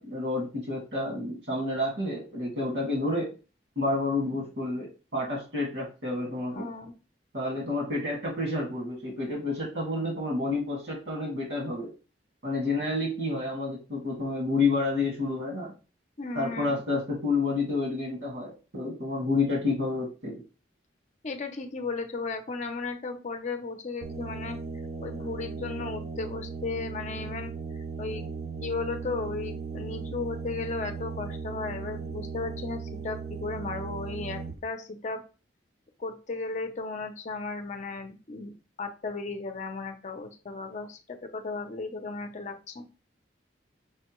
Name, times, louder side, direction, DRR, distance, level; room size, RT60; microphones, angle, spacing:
voice 1, 0.0-3.3 3.8-6.7 7.3-11.9 12.4-15.7 16.3-20.4, left 2 dB, 80° right, -4 dB, 1.9 m, -29 dB
voice 2, 6.5-6.9 16.2-16.8 21.2-24.6 25.0-28.2 28.6-35.2 36.0-38.5 38.8-42.8, left 3 dB, 45° left, 5 dB, 0.6 m, -35 dB
sound 1, 24.0-34.6, right 5 dB, 40° right, 0.4 m, -37 dB
6.1 x 2.2 x 3.0 m, 0.33 s
head